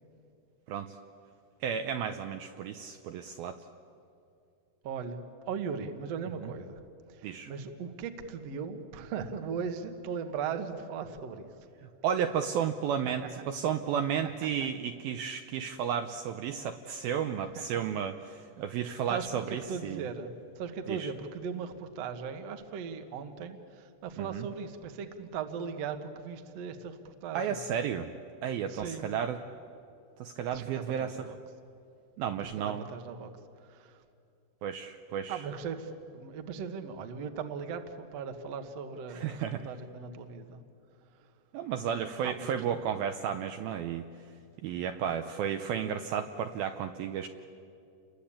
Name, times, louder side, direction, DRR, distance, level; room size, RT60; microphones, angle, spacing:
voice 1, 1.6-3.6 6.4-6.5 7.2-7.5 12.0-20.1 20.9-21.1 24.2-24.5 27.3-28.1 28.4-29.4 30.2-31.3 32.2-32.9 34.6-35.5 39.1-39.7 41.5-44.1 44.6-47.3, right 8 dB, 75° right, 6 dB, 2.3 m, -33 dB
voice 2, 4.8-5.2 5.5-6.7 7.5-11.5 19.1-19.3 19.7-20.3 20.6-23.6 24.0-26.9 27.2-27.6 28.7-29.1 30.5-31.1 32.6-33.3 35.3-35.8 36.1-40.6 42.2-42.5, right 6 dB, 55° right, 7 dB, 1.8 m, -38 dB
29.5 x 22.0 x 8.7 m, 2.5 s
omnidirectional pair, 4.9 m